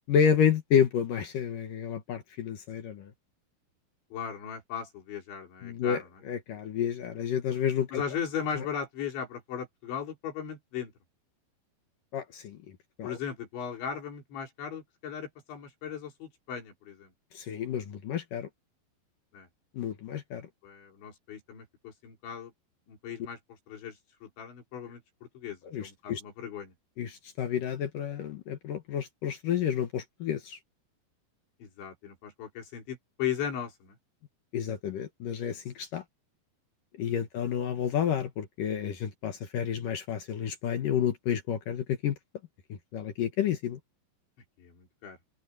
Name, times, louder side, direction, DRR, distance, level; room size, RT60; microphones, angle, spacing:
voice 1, 0.1-3.1 5.6-8.0 8.6-8.7 12.1-12.6 13.0-13.2 17.3-18.5 19.7-20.5 25.6-26.2 27.0-30.6 34.5-36.0 37.0-42.2 42.7-43.8, left 8 dB, 65° left, 2.4 m, -30 dB
voice 2, 4.1-6.1 7.9-10.9 13.0-17.1 19.3-19.5 20.4-22.5 22.9-23.4 23.7-24.0 24.2-25.0 25.4-26.7 31.6-34.0 44.6-45.2, left 8 dB, 80° left, 7.0 m, -37 dB
open air
omnidirectional pair, 5.1 m